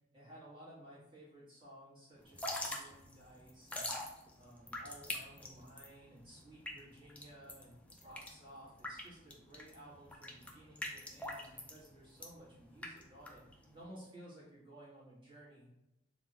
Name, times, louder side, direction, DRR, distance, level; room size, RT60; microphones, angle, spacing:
voice 1, 0.1-3.9 4.3-15.7, right 1 dB, 25° right, -8 dB, 1.3 m, -56 dB
Drip / Trickle dribble, 2.2-13.8, left 1 dB, 5° left, 0.3 m, -44 dB
3.4 x 2.1 x 2.7 m, 0.88 s
head